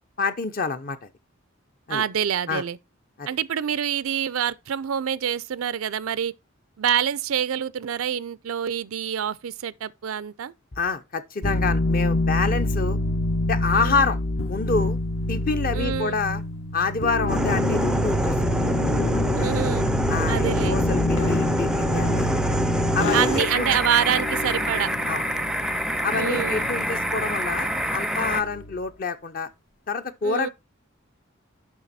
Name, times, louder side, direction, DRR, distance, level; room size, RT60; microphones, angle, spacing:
voice 1, 0.2-1.1 1.9-2.0 2.5-2.6 3.2-3.3 10.8-13.0 13.5-14.2 14.4-15.0 15.3-16.4 16.7-18.4 19.4-19.5 20.1-22.5 22.9-23.7 25.1-25.2 26.0-29.5 29.9-30.5, left 4 dB, 45° left, 0.6 m, -27 dB
voice 2, 1.9-2.8 3.3-6.3 6.8-10.5 13.7-14.0 15.7-16.2 19.4-19.9 20.3-20.8 23.1-24.9 26.1-26.7 30.2-30.5, right 9 dB, 85° right, 0.4 m, -26 dB
sound 1, 11.4-28.8, left 1 dB, 75° left, 1.3 m, -27 dB
sound 2, 17.3-28.4, equal, 5° right, 0.4 m, -26 dB
7.1 x 5.9 x 4.1 m
head